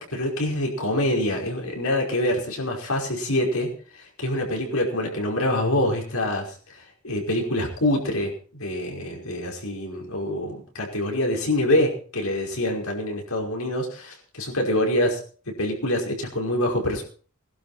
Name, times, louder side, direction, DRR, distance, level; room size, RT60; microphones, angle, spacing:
voice 1, 0.0-6.8 7.0-15.2 15.6-17.0, left 1 dB, 85° left, 1 dB, 5.3 m, -25 dB
20.5 x 12.0 x 4.4 m, 0.41 s
head